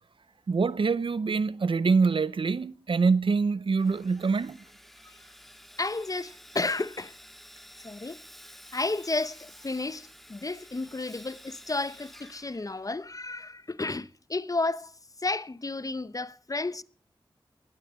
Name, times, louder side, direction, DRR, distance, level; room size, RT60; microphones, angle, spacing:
voice 1, 0.5-4.6, right 4 dB, 65° right, 0.7 m, -25 dB
Sawing, 3.8-13.2, equal, ahead, 2.2 m, -51 dB
voice 2, 5.8-7.1 7.8-8.2 8.7-14.9 15.2-16.8, left 3 dB, 40° left, 0.8 m, -32 dB
18.5 x 13.5 x 5.1 m
cardioid pair, 45°, 9 cm